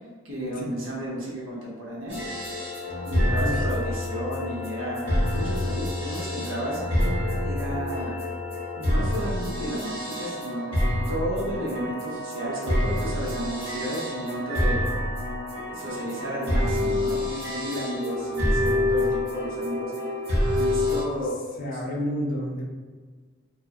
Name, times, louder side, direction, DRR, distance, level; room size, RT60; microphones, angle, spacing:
voice 1, 0.2-2.2 3.1-6.8 7.4-8.2 8.8-10.8 11.1-14.8 15.7-19.9 20.5-21.4, equal, 75° right, -5 dB, 0.7 m, -32 dB
sound 1, 2.1-21.0, left 1 dB, 30° right, 0.9 m, -27 dB
voice 2, 21.6-22.6, equal, 45° left, -2 dB, 0.4 m, -30 dB
2.3 x 2.1 x 2.7 m, 1.4 s
head